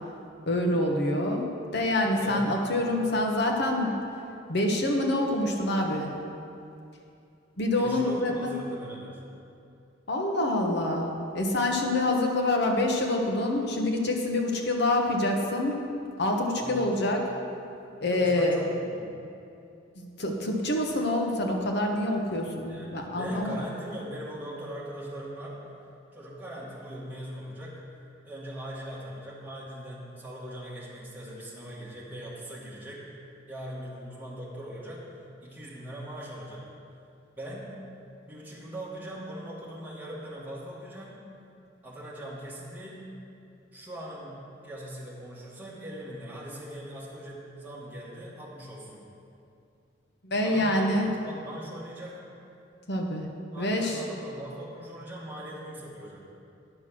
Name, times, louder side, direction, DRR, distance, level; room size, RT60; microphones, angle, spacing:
voice 1, 0.5-3.9 4.5-6.1 7.6-8.6 10.1-15.8 16.2-17.3 18.0-18.6 19.9-23.6 50.2-51.1 52.9-53.3 53.6-54.1, left 1 dB, 60° left, 1 dB, 1.2 m, -26 dB
voice 2, 2.2-2.5 7.7-9.2 16.6-16.9 18.1-19.2 22.7-25.6 26.1-27.8 28.2-33.0 33.5-35.0 35.4-36.6 37.4-37.7 38.3-41.2 41.8-43.0 43.7-49.0 50.4-51.0 51.2-52.2 53.5-56.2, right 1 dB, 10° right, -7 dB, 2.1 m, -40 dB
10.0 x 6.2 x 6.1 m, 2.6 s
head